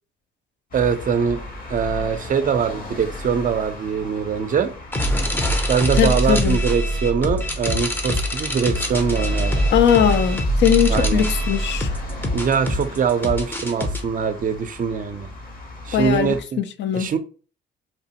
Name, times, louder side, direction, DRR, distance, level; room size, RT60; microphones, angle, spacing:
sound 1, 0.7-16.4, left 1 dB, 45° left, 0.8 m, -33 dB
voice 1, 0.7-1.4 1.7-4.7 5.7-9.6 10.9-11.2 12.3-15.3 15.9-16.6 16.9-17.2, right 6 dB, 45° right, 0.5 m, -22 dB
sound 2, 4.9-14.0, equal, 10° left, 0.5 m, -23 dB
voice 2, 5.9-6.6 9.7-11.9 15.9-17.1, left 9 dB, 65° left, 0.4 m, -20 dB
2.9 x 2.0 x 2.8 m
cardioid pair, 90°, 20 cm